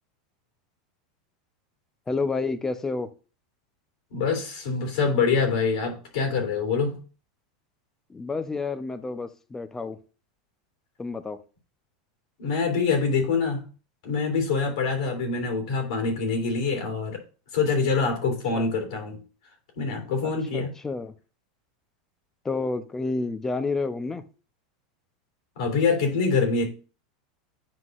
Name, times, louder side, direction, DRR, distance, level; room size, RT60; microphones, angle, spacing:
voice 1, 2.1-3.1 8.1-10.0 11.0-11.4 18.5-18.7 20.5-21.1 22.4-24.2, left 3 dB, 15° left, 0.6 m, -29 dB
voice 2, 4.1-7.0 12.4-13.6 14.0-17.2 17.5-19.2 19.7-20.7 25.5-26.7, left 4 dB, 75° left, 3.0 m, -25 dB
9.6 x 5.6 x 2.5 m
supercardioid pair, 130°, 4 cm